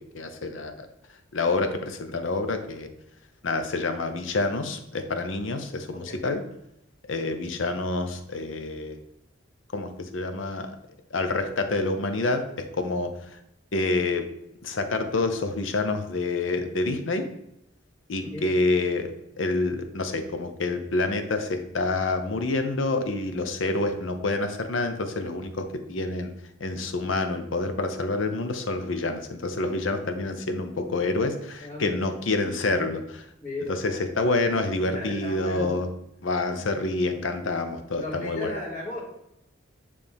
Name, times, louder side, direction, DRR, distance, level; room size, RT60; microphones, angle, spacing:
voice 1, 0.1-0.9 1.3-2.9 3.4-6.4 7.1-9.0 9.7-10.7 11.1-13.4 13.7-14.2 14.6-17.3 18.1-26.3 26.6-33.2 33.7-35.9 36.2-38.5, left 2 dB, 75° left, 7 dB, 0.7 m, -27 dB
voice 2, 5.9-6.3 18.3-18.5 31.6-32.1 33.4-33.8 34.9-35.8 37.4-37.6 38.0-39.0, left 2 dB, 40° left, -6 dB, 2.2 m, -35 dB
9.1 x 3.3 x 3.5 m, 0.80 s
head